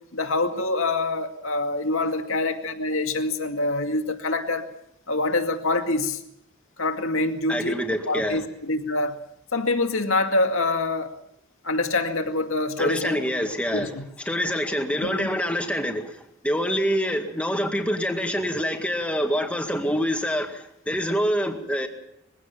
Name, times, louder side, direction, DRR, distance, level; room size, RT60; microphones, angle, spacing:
voice 1, 0.1-4.7 5.1-6.2 6.8-7.8 8.1-9.2 9.5-11.2 11.6-13.2 13.7-14.0 15.0-15.3, left 2 dB, 75° left, 5 dB, 2.1 m, -25 dB
voice 2, 7.5-8.4 12.8-14.0 14.3-21.9, equal, 5° left, 4 dB, 2.0 m, -26 dB
22.0 x 16.0 x 7.4 m, 0.79 s
head